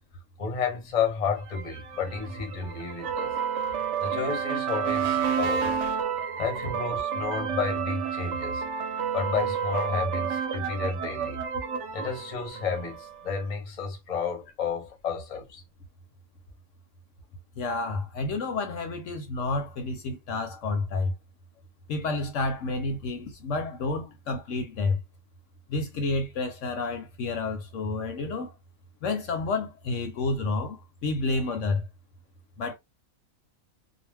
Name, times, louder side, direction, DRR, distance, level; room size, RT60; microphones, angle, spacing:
voice 1, 0.4-3.3 4.0-5.7 6.4-8.6 9.1-11.4 11.9-15.6, left 6 dB, 35° left, 0.7 m, -31 dB
sound 1, 1.5-13.2, right 7 dB, 65° right, 0.9 m, -30 dB
voice 2, 17.6-21.1 21.9-25.0 25.7-28.5 29.0-31.9 32.6-32.7, left 3 dB, 70° left, 0.9 m, -30 dB
2.4 x 2.1 x 3.3 m
omnidirectional pair, 1.5 m